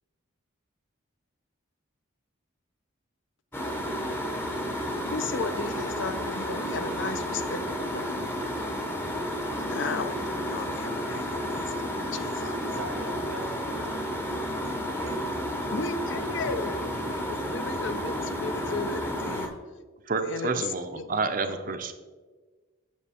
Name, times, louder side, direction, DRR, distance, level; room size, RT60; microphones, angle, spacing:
sound 1, 3.5-19.5, equal, 10° left, 0.7 m, -31 dB
voice 1, 5.1-8.2 9.5-12.6 15.7-19.6 20.2-20.7 21.0-21.2, left 3 dB, 65° left, 0.5 m, -35 dB
voice 2, 11.3-15.8, right 2 dB, 75° right, 1.2 m, -45 dB
voice 3, 20.1-21.9, right 4 dB, 40° right, 0.5 m, -29 dB
7.2 x 6.9 x 4.3 m
head